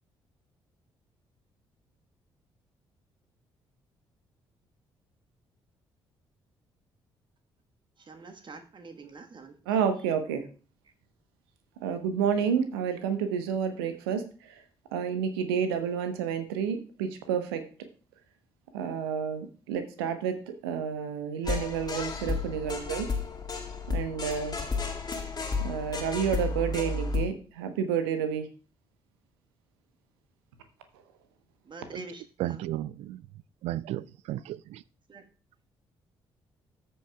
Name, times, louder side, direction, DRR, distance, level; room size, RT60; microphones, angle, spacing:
voice 1, 8.0-9.8 31.6-32.6 35.1-35.2, right 3 dB, 40° right, 6 dB, 1.4 m, -46 dB
voice 2, 9.7-10.4 11.8-14.6 14.9-17.6 18.7-20.4 20.6-23.1 23.9-24.6 25.6-28.5, right 7 dB, 75° right, 9 dB, 1.0 m, -30 dB
sound 1, 21.4-27.3, left 4 dB, 30° left, 2.0 m, -32 dB
voice 3, 32.4-33.2 33.6-34.8, right 14 dB, 55° right, 21 dB, 0.4 m, -34 dB
13.5 x 7.7 x 2.3 m, 0.37 s
figure-of-eight pair, 40°, 13 cm